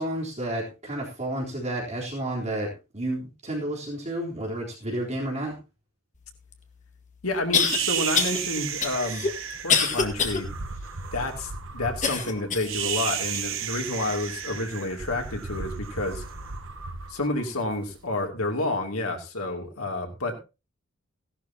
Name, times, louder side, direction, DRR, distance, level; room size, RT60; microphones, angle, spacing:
voice 1, 0.0-5.6, right 1 dB, 30° right, -3 dB, 3.8 m, -31 dB
sound 1, 6.5-6.6 7.5-7.8 8.1-8.4 8.8-10.4 10.9-11.0 12.0-12.8 13.3-13.5 14.2-14.3, left 5 dB, 35° left, 1.8 m, -24 dB
voice 2, 7.2-9.3 9.6-10.5 11.1-16.2 17.1-20.4, left 2 dB, 80° left, 3 dB, 2.8 m, -29 dB
sound 2, 7.6-18.0, right 7 dB, 60° right, 1.2 m, -33 dB
16.5 x 12.0 x 2.9 m, 0.29 s
head